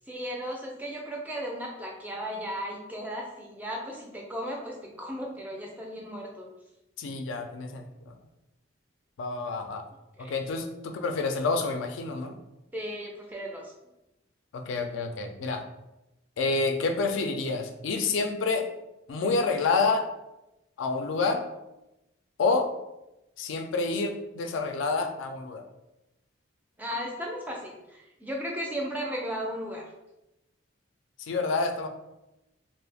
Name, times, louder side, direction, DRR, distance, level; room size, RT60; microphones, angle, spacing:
voice 1, 0.1-6.5 10.2-10.3 12.7-13.7 26.8-29.8, equal, 10° right, -1 dB, 0.3 m, -35 dB
voice 2, 7.0-8.1 9.2-9.8 10.2-12.4 14.5-15.6 16.4-18.7 19.1-20.1 20.8-21.4 22.4-22.7 23.4-25.6 31.2-31.9, left 3 dB, 75° left, 5 dB, 0.3 m, -28 dB
2.3 x 2.0 x 3.3 m, 0.93 s
head